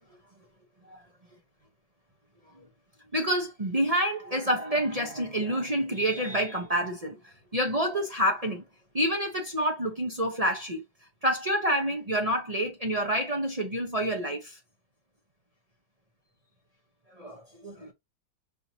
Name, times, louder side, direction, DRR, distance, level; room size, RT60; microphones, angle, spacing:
voice 1, 3.1-8.6 8.9-10.8 11.2-14.6 17.2-17.9, equal, 35° right, 0.6 m, -28 dB
5.7 x 2.7 x 2.8 m
omnidirectional pair, 2.1 m